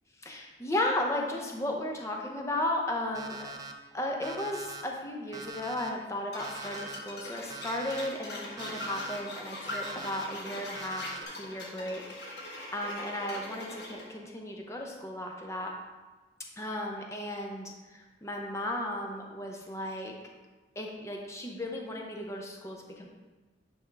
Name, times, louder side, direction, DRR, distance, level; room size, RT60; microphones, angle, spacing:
voice 1, 0.2-3.5 3.9-11.1 11.3-12.0 12.3-15.7 16.6-20.1 20.8-23.1, left 1 dB, 15° left, 0 dB, 0.7 m, -35 dB
Alarm, 3.1-3.7 4.2-4.8 5.3-5.9 6.4-7.0 7.5-8.1 8.6-9.2 9.7-10.2 10.7-11.3, right 3 dB, 20° right, 0.4 m, -43 dB
sound 1, 6.3-14.1, left 1 dB, 55° left, 1.3 m, -41 dB
10.5 x 3.5 x 3.4 m, 1.2 s
head